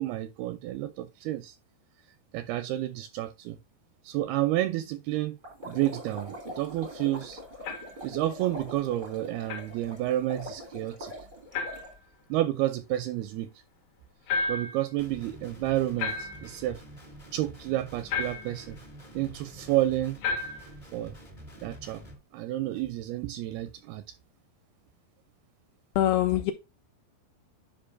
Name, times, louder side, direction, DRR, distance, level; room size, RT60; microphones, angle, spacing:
voice 1, 0.0-1.6 2.3-3.6 4.0-5.4 5.6-7.4 8.0-11.1 12.3-13.5 14.5-16.8 17.3-18.8 19.2-20.2 20.9-21.2 21.6-22.0 22.3-24.0, right 15 dB, 85° right, 2.2 m, -30 dB
sound 1, 5.4-11.9, equal, 45° right, 0.6 m, -43 dB
sound 2, 7.6-8.0 9.5-9.7 11.5-11.9 14.3-14.8 16.0-16.6 18.1-18.6 20.2-20.7, left 4 dB, 55° left, 2.3 m, -32 dB
Guitar, 15.0-22.1, right 1 dB, 25° left, 0.7 m, -48 dB
voice 2, 26.0-26.5, left 13 dB, 85° left, 2.2 m, -23 dB
9.9 x 5.2 x 2.6 m
omnidirectional pair, 4.9 m